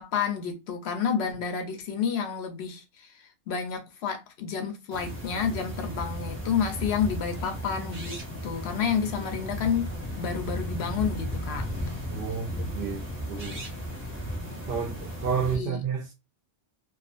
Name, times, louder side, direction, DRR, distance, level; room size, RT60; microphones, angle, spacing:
voice 1, 0.0-11.7 15.5-15.8, left 7 dB, 70° left, 0.8 m, -30 dB
sound 1, 4.9-15.6, equal, 10° right, 0.8 m, -35 dB
voice 2, 12.1-13.7 14.7-16.1, right 6 dB, 60° right, 0.6 m, -31 dB
2.4 x 2.4 x 2.4 m
omnidirectional pair, 1.2 m